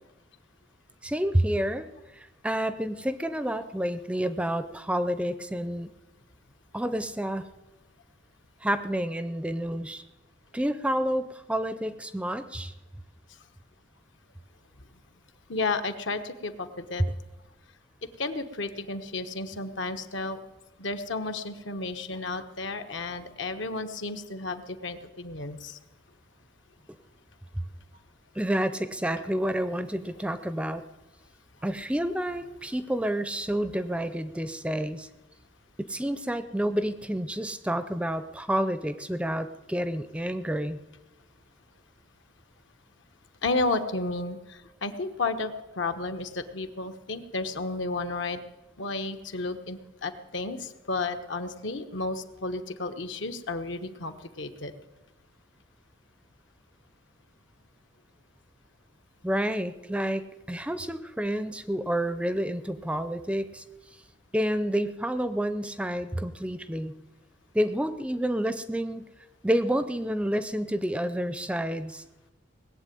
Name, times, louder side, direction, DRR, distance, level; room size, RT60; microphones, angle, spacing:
voice 1, 1.0-1.9 2.1-5.9 6.7-7.4 8.6-10.0 10.5-12.7 26.9-27.0 28.4-30.8 31.6-35.1 35.8-40.8 59.2-63.6 64.3-66.9 67.5-69.1 69.4-72.0, equal, 5° right, 12 dB, 0.5 m, -29 dB
voice 2, 15.5-17.0 18.2-20.4 20.8-25.8 43.4-48.4 48.8-54.7, left 3 dB, 70° left, 8 dB, 1.2 m, -32 dB
19.0 x 7.9 x 9.2 m, 1.0 s
head